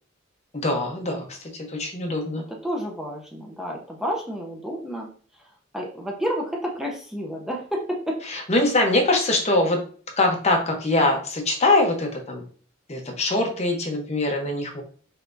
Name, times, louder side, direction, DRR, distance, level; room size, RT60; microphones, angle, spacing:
voice 1, 0.5-2.4 8.3-9.8 10.2-12.4 12.9-14.8, left 2 dB, 35° left, 2 dB, 1.0 m, -23 dB
voice 2, 2.5-5.1 5.3-8.2, equal, 5° right, -1 dB, 0.7 m, -30 dB
5.7 x 3.3 x 2.7 m, 0.43 s
head